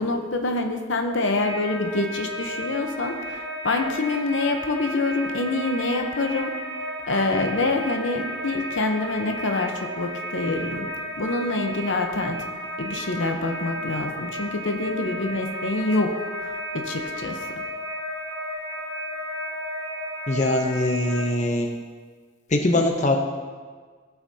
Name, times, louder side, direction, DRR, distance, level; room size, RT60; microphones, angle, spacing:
voice 1, 0.0-6.5 7.1-10.9 11.2-12.4 12.8-17.5, left 2 dB, 75° left, 4 dB, 0.8 m, -26 dB
sound 1, 1.4-21.2, equal, 5° right, 1.9 m, -33 dB
voice 2, 20.3-21.7 22.5-23.2, left 1 dB, 40° left, 3 dB, 0.7 m, -22 dB
16.0 x 5.8 x 2.8 m, 1.5 s
head